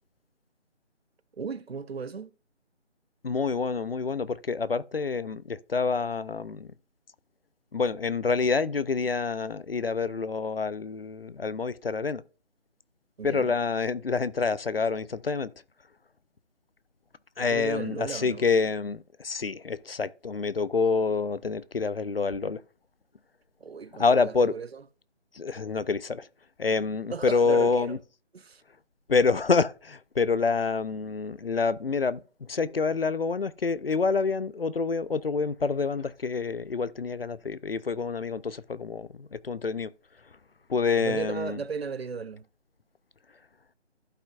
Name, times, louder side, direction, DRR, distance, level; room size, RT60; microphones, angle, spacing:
voice 1, 1.4-2.3 13.2-13.5 17.5-18.5 23.6-24.8 27.1-28.0 28.3-28.6 41.0-42.4, right 5 dB, 60° right, 0.6 m, -35 dB
voice 2, 3.2-6.7 7.7-12.2 13.2-15.5 17.4-22.6 24.0-24.5 25.3-26.3 26.6-28.0 29.1-39.9 40.7-41.6, left 4 dB, 55° left, 0.5 m, -27 dB
15.5 x 5.6 x 2.4 m
figure-of-eight pair, 170°, 35 cm